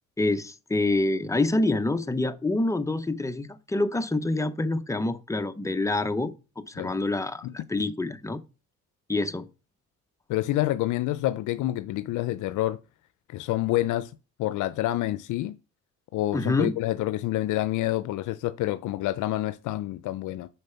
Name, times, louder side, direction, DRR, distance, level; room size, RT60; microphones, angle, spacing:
voice 1, 0.2-6.3 6.7-8.4 9.1-9.5 16.3-16.7, left 2 dB, 10° left, 0.7 m, -26 dB
voice 2, 10.3-12.8 13.3-14.1 14.4-15.5 16.1-20.5, left 15 dB, 80° left, 0.5 m, -28 dB
6.6 x 4.5 x 5.7 m
cardioid pair, 90°, 30 cm